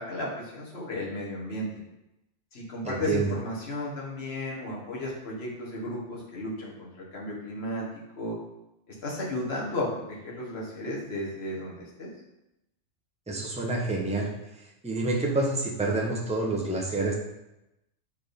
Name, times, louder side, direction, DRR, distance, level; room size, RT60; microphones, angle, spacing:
voice 1, 0.0-1.7 2.5-7.9 8.1-8.4 8.9-12.1, left 1 dB, 50° left, -4 dB, 1.6 m, -34 dB
voice 2, 2.8-3.3 13.3-14.3 14.8-17.1, right 2 dB, 5° right, -2 dB, 0.8 m, -28 dB
4.4 x 4.2 x 5.1 m, 0.91 s
omnidirectional pair, 1.4 m